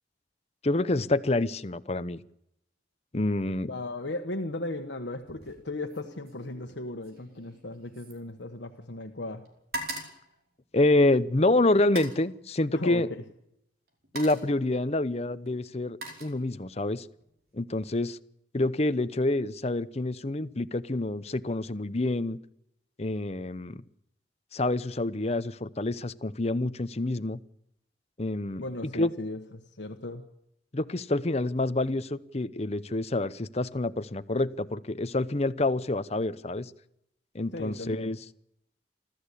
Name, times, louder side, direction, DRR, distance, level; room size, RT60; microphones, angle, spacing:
voice 1, 0.6-2.2 3.1-3.7 10.7-13.1 14.1-17.1 17.5-18.2 18.5-22.4 23.0-23.8 24.5-27.4 28.2-28.6 28.9-29.1 30.7-36.7 37.3-38.2, left 2 dB, 35° left, 12 dB, 0.8 m, -27 dB
voice 2, 3.7-9.4 12.7-13.2 28.6-30.2 37.5-38.2, left 2 dB, 80° left, 4 dB, 1.4 m, -36 dB
sound 1, 5.2-5.6 5.9-9.0 9.3-11.2 11.8-12.3 13.3-13.5 13.9-14.6 15.4-16.8 17.2-17.6, right 2 dB, 55° right, 4.9 m, -42 dB
29.0 x 13.5 x 8.4 m, 0.79 s
head